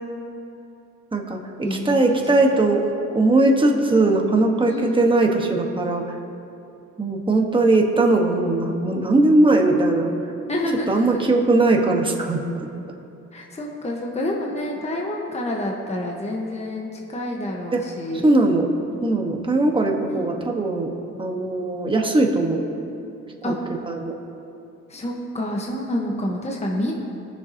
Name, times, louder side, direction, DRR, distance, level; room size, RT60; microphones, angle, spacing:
voice 1, 1.1-2.8 3.1-6.0 7.0-10.1 10.9-12.4 17.7-17.8 18.2-18.7 19.0-20.9 21.2-22.6 23.4-23.5 23.8-24.1, right 2 dB, 15° right, 1 dB, 1.2 m, -19 dB
voice 2, 1.6-2.0 2.3-2.4 2.7-2.8 4.7-5.0 10.5-11.3 13.3-18.2 20.1-20.3 23.4-23.6 24.9-26.9, left 1 dB, 20° left, -1 dB, 1.1 m, -28 dB
19.5 x 6.9 x 2.8 m, 2.8 s
cardioid pair, 90°, 30 cm